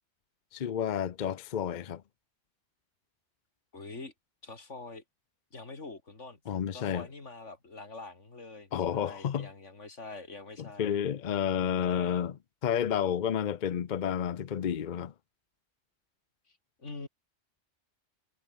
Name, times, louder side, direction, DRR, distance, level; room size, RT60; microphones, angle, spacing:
voice 1, 0.5-2.0 6.5-7.1 8.7-9.5 10.6-12.4 12.6-15.1, left 8 dB, 50° left, 0.7 m, -30 dB
voice 2, 3.7-4.1 4.4-5.0 5.5-10.9 11.6-12.3 16.5-17.1, left 3 dB, 90° left, 3.6 m, -45 dB
omnidirectional pair, 1.2 m